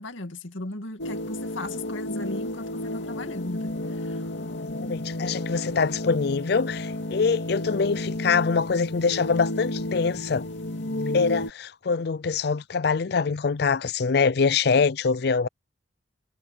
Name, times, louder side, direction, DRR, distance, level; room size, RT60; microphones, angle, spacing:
voice 1, 0.0-3.7 4.0-4.2, left 2 dB, 85° left, 2.2 m, -36 dB
sound 1, 1.0-11.5, left 1 dB, 70° left, 2.4 m, -32 dB
voice 2, 4.8-10.5 11.1-15.5, left 5 dB, 55° left, 0.4 m, -24 dB
head